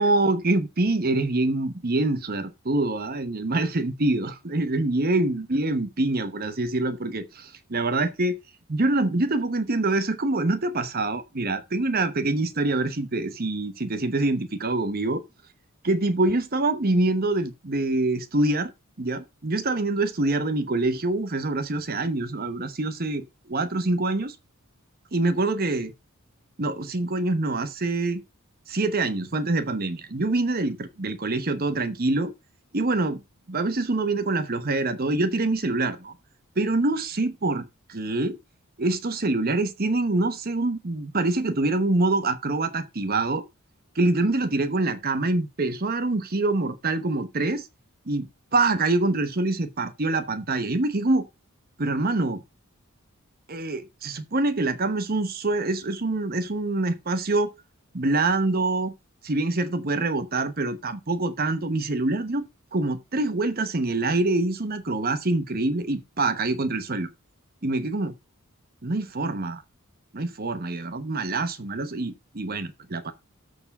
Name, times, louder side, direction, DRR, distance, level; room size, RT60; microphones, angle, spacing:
voice 1, 0.0-8.4 8.7-15.2 15.8-18.7 19.0-24.3 25.1-25.9 26.6-28.2 28.7-32.3 32.7-33.2 33.5-36.1 36.6-38.4 38.8-43.4 44.0-47.7 48.1-48.3 48.5-51.3 51.8-52.4 53.5-57.5 57.9-58.9 59.2-67.1 67.6-68.1 68.8-69.6 70.1-73.1, right 2 dB, 45° right, 1.0 m, -25 dB
13.0 x 4.7 x 5.4 m
head